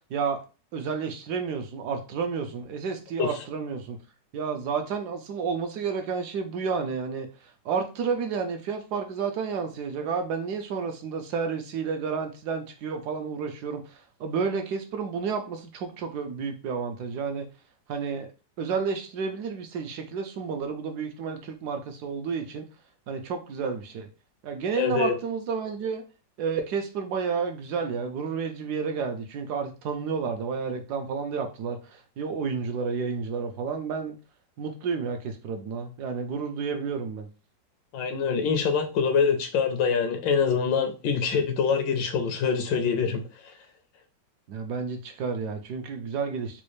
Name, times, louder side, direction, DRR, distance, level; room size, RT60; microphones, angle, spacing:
voice 1, 0.1-0.4 0.7-4.0 4.3-7.3 7.6-17.5 17.9-18.3 18.6-22.7 23.1-24.1 24.4-26.0 26.4-34.1 34.6-37.3 44.5-46.6, right 5 dB, 70° right, 5 dB, 1.0 m, -31 dB
voice 2, 24.7-25.2 37.9-43.2, left 6 dB, 85° left, 6 dB, 1.4 m, -25 dB
4.1 x 2.3 x 3.1 m, 0.32 s
omnidirectional pair, 1.9 m